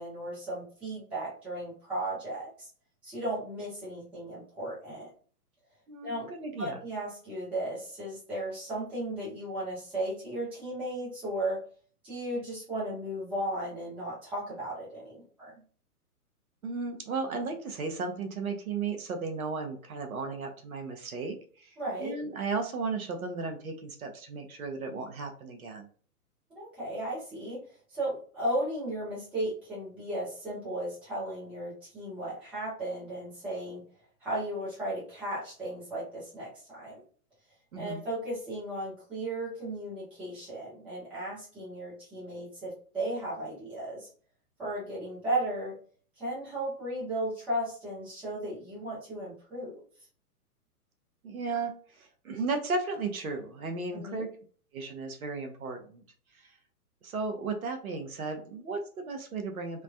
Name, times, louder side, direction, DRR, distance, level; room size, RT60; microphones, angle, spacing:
voice 1, 0.0-2.7 3.0-5.1 6.0-6.3 6.6-11.6 12.0-15.5 21.8-22.1 26.5-27.6 27.9-33.8 34.2-37.0 37.7-44.1 44.6-45.7 46.2-49.8 53.9-54.3, right 1 dB, 5° right, -9 dB, 0.5 m, -35 dB
voice 2, 5.9-6.8 16.6-25.9 37.7-38.0 51.2-54.3 54.7-56.0 56.3-56.5 57.0-59.8, right 4 dB, 65° right, 5 dB, 0.8 m, -35 dB
3.3 x 2.1 x 2.3 m, 0.43 s
figure-of-eight pair, 120°, 46 cm